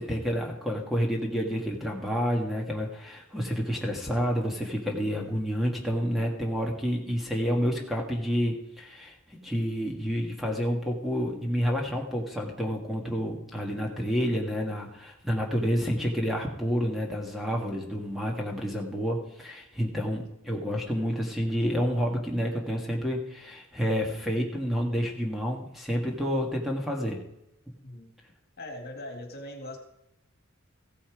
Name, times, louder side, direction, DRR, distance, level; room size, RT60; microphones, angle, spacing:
voice 1, 0.0-27.2, equal, ahead, 0 dB, 1.7 m, -29 dB
voice 2, 28.6-29.8, left 1 dB, 45° left, 4 dB, 2.1 m, -40 dB
15.5 x 8.6 x 4.9 m, 0.82 s
head